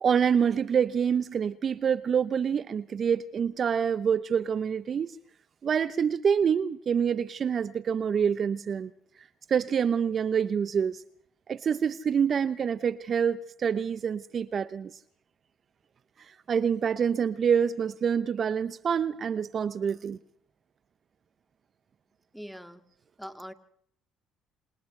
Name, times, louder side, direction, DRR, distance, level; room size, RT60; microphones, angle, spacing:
voice 1, 0.0-5.2 5.6-8.9 9.5-11.0 11.5-15.0 16.2-20.2, right 7 dB, 45° right, 15 dB, 0.9 m, -26 dB
voice 2, 22.3-22.9 23.2-23.5, equal, ahead, 8 dB, 2.3 m, -42 dB
28.0 x 27.0 x 3.4 m, 0.66 s
supercardioid pair, 70°, 0 cm